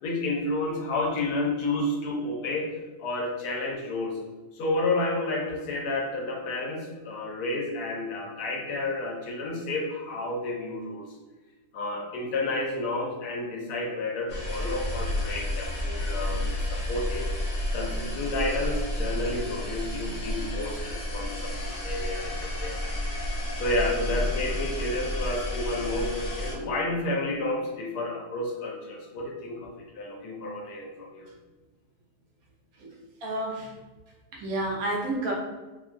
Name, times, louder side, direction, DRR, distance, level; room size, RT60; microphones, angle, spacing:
voice 1, 0.0-2.7 3.0-4.2 4.5-11.1 11.7-17.3 17.7-23.3 23.6-31.3, left 2 dB, 75° left, 0 dB, 1.1 m, -31 dB
sound 1, 14.3-26.5, left 1 dB, 40° left, 0.6 m, -31 dB
voice 2, 33.2-33.7 34.3-35.3, right 1 dB, 70° right, -3 dB, 1.0 m, -30 dB
2.9 x 2.2 x 2.5 m, 1.2 s
omnidirectional pair, 1.7 m